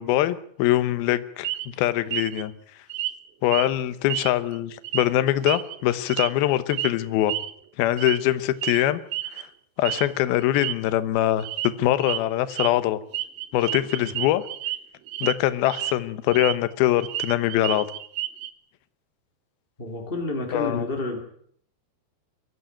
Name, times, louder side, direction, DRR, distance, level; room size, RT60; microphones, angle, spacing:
voice 1, 0.0-2.5 3.4-7.3 7.8-9.0 9.3-9.5 9.8-13.0 13.5-14.4 15.2-17.9 20.5-20.9, left 14 dB, 70° left, 13 dB, 2.5 m, -23 dB
sound 1, 1.4-1.7 2.1-2.4 2.9-3.2 3.5-3.7 4.1-4.6 4.8-5.0 5.5-6.4 6.7-6.9 7.3-7.5 8.0-8.3 8.6-8.8 9.1-9.4 9.9-10.1 10.4-10.7 11.4-11.7 12.0-12.2 12.5-12.7 13.1-14.8 15.1-15.3 15.7-16.6 16.8-18.5, right 14 dB, 70° right, 2.3 m, -30 dB
voice 2, 19.8-21.2, left 2 dB, 25° left, 2 dB, 1.2 m, -29 dB
23.0 x 14.5 x 9.1 m, 0.64 s
omnidirectional pair, 5.4 m